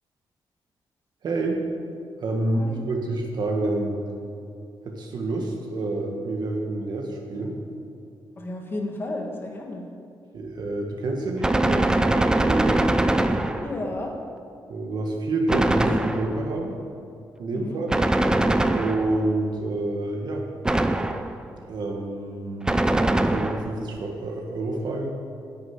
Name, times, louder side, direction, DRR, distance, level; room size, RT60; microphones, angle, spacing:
voice 1, 1.2-1.6 2.2-4.0 4.9-7.5 10.3-12.9 14.7-16.8 17.4-17.9 18.7-20.4 21.7-22.8 23.3-25.1, right 2 dB, 55° right, 1 dB, 1.7 m, -28 dB
voice 2, 8.4-9.8 13.6-14.1 17.5-17.8, left 2 dB, 25° left, 1 dB, 1.3 m, -32 dB
Gunshot gunfire, 11.4-13.9 15.5-16.5 17.9-19.3 20.6-21.5 22.7-23.8, right 1 dB, 10° right, 0.4 m, -22 dB
10.5 x 6.9 x 9.2 m, 2.5 s
wide cardioid pair, 175°, 9 cm